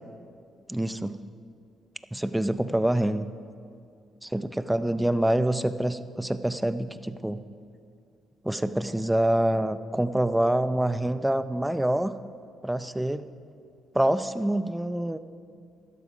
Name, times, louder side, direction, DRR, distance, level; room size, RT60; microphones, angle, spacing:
voice 1, 0.7-1.2 2.1-3.3 4.2-7.4 8.4-12.1 12.6-13.3 13.9-15.2, right 1 dB, 5° right, 13 dB, 0.5 m, -26 dB
12.0 x 11.5 x 5.0 m, 2.3 s
cardioid pair, 90°, 0 cm